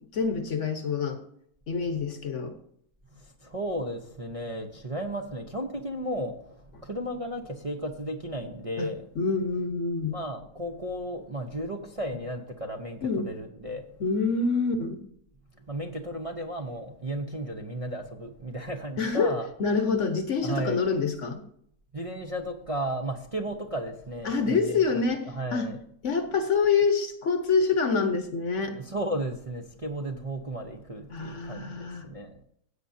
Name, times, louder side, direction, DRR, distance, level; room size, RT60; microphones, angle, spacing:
voice 1, 0.0-1.2 1.7-2.6 8.8-10.2 13.0-13.3 14.0-15.0 19.0-19.3 19.6-21.4 24.2-25.2 25.5-25.7 26.0-28.8 31.1-32.1, left 4 dB, 55° left, 7 dB, 1.4 m, -26 dB
voice 2, 3.1-9.0 10.1-13.8 15.6-19.5 20.4-20.8 21.9-25.8 28.7-32.3, right 1 dB, 30° right, 1 dB, 0.8 m, -34 dB
16.0 x 8.5 x 2.7 m, 0.68 s
omnidirectional pair, 1.6 m